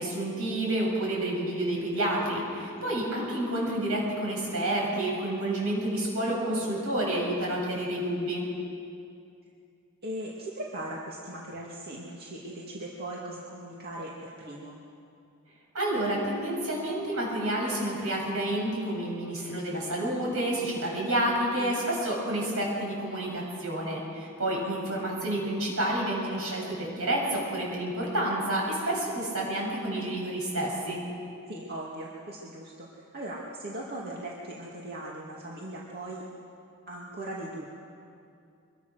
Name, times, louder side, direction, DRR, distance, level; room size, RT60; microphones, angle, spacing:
voice 1, 0.0-8.4 15.7-31.0, right 1 dB, 70° right, -2 dB, 7.4 m, -29 dB
voice 2, 6.2-6.8 10.0-14.8 21.6-21.8 24.5-25.0 31.5-36.2 36.9-37.6, right 1 dB, 45° right, -4 dB, 2.3 m, -39 dB
24.0 x 23.0 x 6.5 m, 2.6 s
head